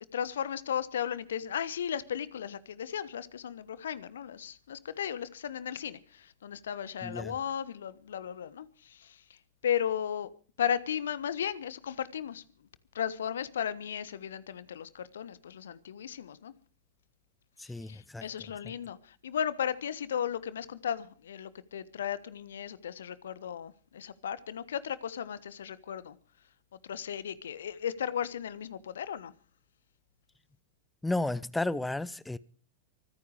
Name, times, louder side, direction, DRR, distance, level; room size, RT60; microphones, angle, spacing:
voice 1, 0.1-9.4 9.6-10.3 10.6-12.4 12.9-16.5 17.9-26.1 26.8-29.3, left 9 dB, 65° left, 1.2 m, -35 dB
voice 2, 7.0-7.3 17.6-18.2 18.6-18.7 31.0-32.4, left 2 dB, 5° left, 0.7 m, -33 dB
24.5 x 9.6 x 5.0 m
figure-of-eight pair, 90°, 0 cm